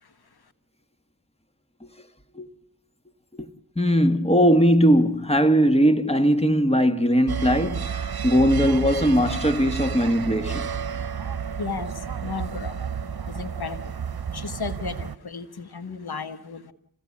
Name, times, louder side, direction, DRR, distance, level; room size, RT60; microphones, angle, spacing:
voice 1, 3.7-10.7, equal, 15° left, 1.6 m, -20 dB
sound 1, 7.3-15.2, right 7 dB, 75° right, 0.8 m, -31 dB
voice 2, 11.6-12.9 13.2-13.9 14.3-16.7, left 5 dB, 85° left, 1.4 m, -34 dB
27.5 x 16.5 x 8.4 m
wide cardioid pair, 50°, 37 cm